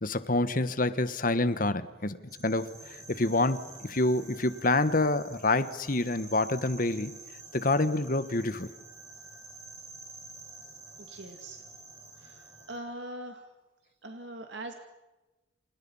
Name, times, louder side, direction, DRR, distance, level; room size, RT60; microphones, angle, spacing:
voice 1, 0.0-7.2 7.5-8.7, left 2 dB, 45° left, 1.3 m, -27 dB
sound 1, 2.2-12.8, right 3 dB, 15° right, 5.8 m, -49 dB
voice 2, 11.1-11.6 12.2-13.5 14.0-14.7, right 1 dB, 65° right, 2.3 m, -42 dB
29.0 x 29.0 x 5.6 m
head